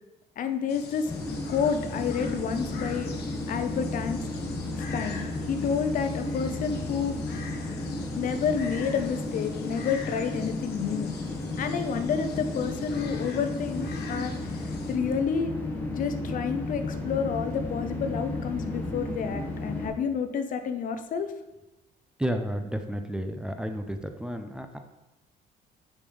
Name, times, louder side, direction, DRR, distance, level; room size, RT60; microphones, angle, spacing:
voice 1, 0.4-1.1 1.5-3.1 3.5-4.2 4.8-7.2 8.2-11.1 11.6-15.5 15.9-21.3, left 6 dB, 50° left, 9 dB, 0.6 m, -30 dB
sound 1, 0.7-14.9, left 5 dB, 75° left, 1.1 m, -44 dB
sound 2, 1.1-19.9, left 2 dB, 10° left, 1.5 m, -33 dB
voice 2, 22.2-24.8, equal, 5° right, 6 dB, 0.5 m, -32 dB
5.3 x 5.3 x 5.0 m, 1.0 s
cardioid pair, 110°, 17 cm